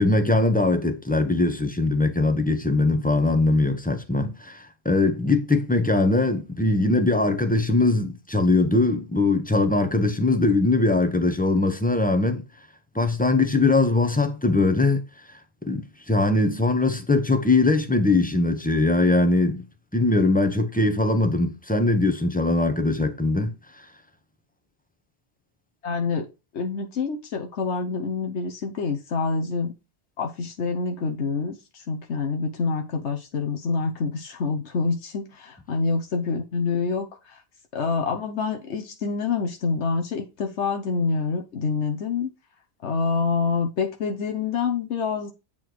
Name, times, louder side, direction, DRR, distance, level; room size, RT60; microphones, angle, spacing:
voice 1, 0.0-12.4 12.9-15.0 15.6-19.7 19.9-23.8, left 2 dB, 10° left, 1.0 m, -21 dB
voice 2, 25.8-26.3 26.5-29.7 30.2-37.4 37.7-42.3 42.8-45.3, left 4 dB, 85° left, 1.3 m, -27 dB
8.9 x 4.2 x 4.7 m
omnidirectional pair, 1.1 m